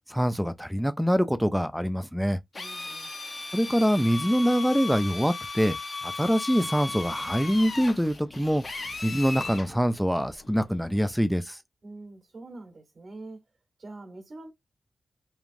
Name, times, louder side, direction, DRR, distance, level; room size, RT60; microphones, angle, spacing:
voice 1, 0.1-2.4 3.5-5.8 6.0-8.6 9.0-11.6, equal, ahead, 0.4 m, -24 dB
Drill, 2.5-9.7, left 3 dB, 45° left, 0.8 m, -36 dB
voice 2, 2.5-3.2 11.8-13.4 13.8-14.5, right 2 dB, 55° right, 1.2 m, -44 dB
sound 1, 6.8-11.2, left 1 dB, 80° left, 0.9 m, -52 dB
3.2 x 2.3 x 2.5 m
cardioid pair, 70°, 0 cm